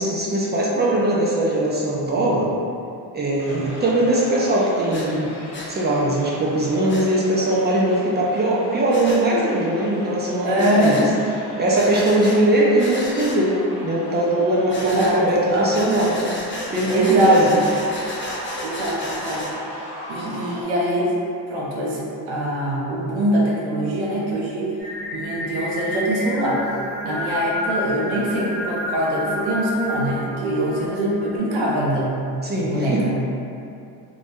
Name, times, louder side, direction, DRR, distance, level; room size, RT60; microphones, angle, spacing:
voice 1, 0.0-2.5 3.1-5.3 5.7-11.0 11.6-13.5 13.8-16.2 16.7-17.6 32.4-33.0, right 1 dB, 25° right, -5 dB, 0.4 m, -20 dB
sound 1, 3.4-20.6, equal, 90° left, 0.7 m, -38 dB
Breathing, 4.9-5.1 5.5-5.7 6.9-7.1 8.9-9.2 10.6-11.1 11.7-12.4 12.8-13.4 14.7-15.1 15.7-19.5, left 1 dB, 25° left, 0.5 m, -33 dB
voice 2, 10.4-11.0 14.7-15.7 16.9-17.4 18.6-21.2 21.5-24.7 25.1-26.6 27.0-32.2 32.6-33.2, right 1 dB, 80° right, -5 dB, 0.6 m, -23 dB
Singing, 24.8-31.4, equal, ahead, 1.1 m, -30 dB
2.3 x 2.1 x 2.7 m, 2.6 s
supercardioid pair, 60°, 46 cm